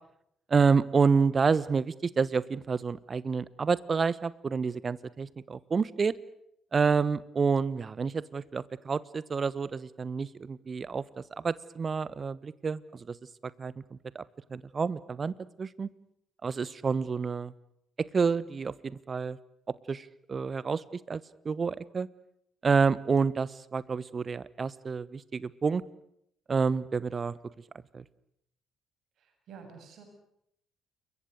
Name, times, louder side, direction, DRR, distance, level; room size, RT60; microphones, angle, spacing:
voice 1, 0.5-6.1 6.7-13.2 13.6-14.2 14.5-15.9 16.4-17.5 18.0-19.4 19.9-22.1 22.6-25.8 26.5-27.3 27.9-28.0, right 5 dB, 40° right, 20 dB, 1.1 m, -29 dB
voice 2, 29.2-30.0, right 6 dB, 60° right, 5 dB, 7.2 m, -49 dB
29.5 x 23.0 x 6.6 m, 0.74 s
figure-of-eight pair, 45°, 0 cm